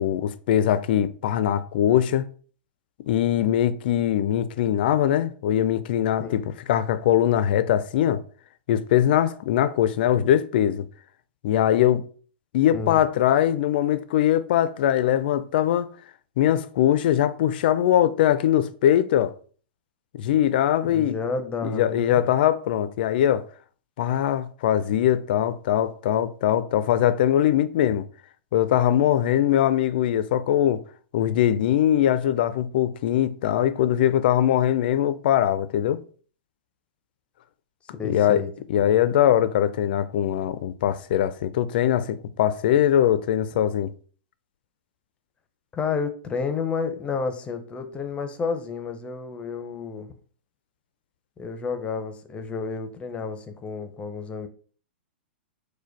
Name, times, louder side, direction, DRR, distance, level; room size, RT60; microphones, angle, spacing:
voice 1, 0.0-2.3 3.1-8.2 8.7-10.9 11.4-12.0 12.5-15.9 16.4-19.3 20.1-21.2 21.6-23.4 24.0-28.1 28.5-30.8 31.1-36.0 38.0-38.4 38.7-43.9, left 11 dB, 60° left, 0.4 m, -21 dB
voice 2, 20.8-22.2 37.9-38.5 45.7-50.1 51.4-54.5, left 5 dB, 20° left, 0.7 m, -30 dB
4.8 x 2.2 x 4.5 m
hypercardioid pair, 110°, 6 cm